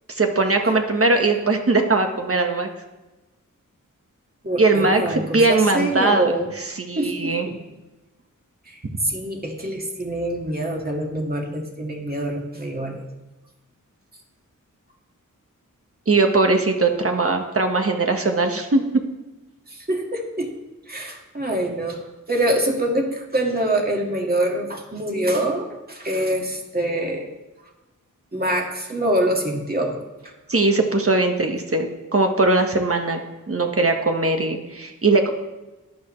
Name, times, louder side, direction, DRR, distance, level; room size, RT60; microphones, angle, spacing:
voice 1, 0.1-2.7 4.6-6.3 6.8-7.5 16.1-18.8 30.5-33.2 33.5-35.3, right 3 dB, 45° right, 4 dB, 1.5 m, -20 dB
voice 2, 4.4-6.5 7.0-7.5 8.7-13.1 19.7-20.5 20.9-22.0 22.3-27.3 28.3-30.0 30.2-30.3, right 1 dB, 30° right, 0 dB, 2.1 m, -25 dB
14.0 x 11.0 x 3.3 m, 1.1 s
wide cardioid pair, 70°, 32 cm